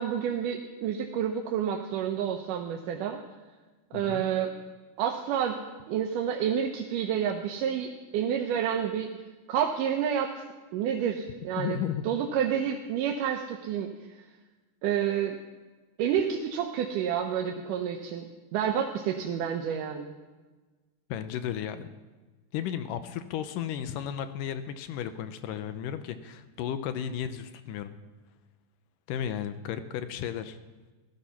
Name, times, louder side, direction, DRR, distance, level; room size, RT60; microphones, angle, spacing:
voice 1, 0.0-3.2 3.9-4.6 5.0-9.1 9.5-10.4 10.7-11.8 12.1-13.9 14.8-15.4 16.0-20.2, right 8 dB, 75° right, 3 dB, 2.3 m, -29 dB
voice 2, 3.9-4.3 11.6-12.0 21.1-21.9 22.5-27.9 29.1-30.6, left 9 dB, 80° left, 10 dB, 2.3 m, -34 dB
16.0 x 13.0 x 5.8 m, 1.3 s
omnidirectional pair, 4.0 m